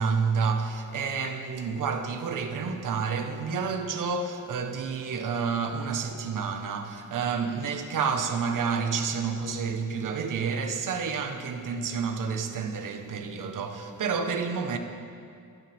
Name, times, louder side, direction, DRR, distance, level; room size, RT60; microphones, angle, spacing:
voice 1, 0.0-14.8, right 5 dB, 70° right, 1.4 m, -29 dB
29.0 x 12.5 x 3.6 m
wide cardioid pair, 175°, 32 cm